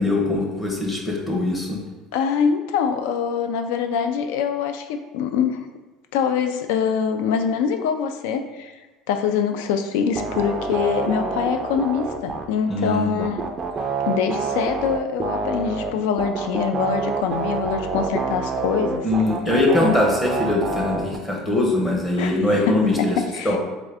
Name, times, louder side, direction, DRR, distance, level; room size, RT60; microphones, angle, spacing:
voice 1, 0.0-1.8 12.7-13.3 19.0-23.1 23.4-23.6, left 2 dB, 15° left, -1 dB, 0.8 m, -22 dB
voice 2, 2.1-5.6 6.1-8.7 9.1-13.5 14.1-19.1 22.2-23.6, left 7 dB, 80° left, 7 dB, 0.3 m, -24 dB
sound 1, 10.1-12.4 13.2-15.9 16.2-21.2, right 4 dB, 20° right, 0.3 m, -27 dB
3.6 x 3.5 x 3.3 m, 1.2 s
cardioid pair, 165°, 0 cm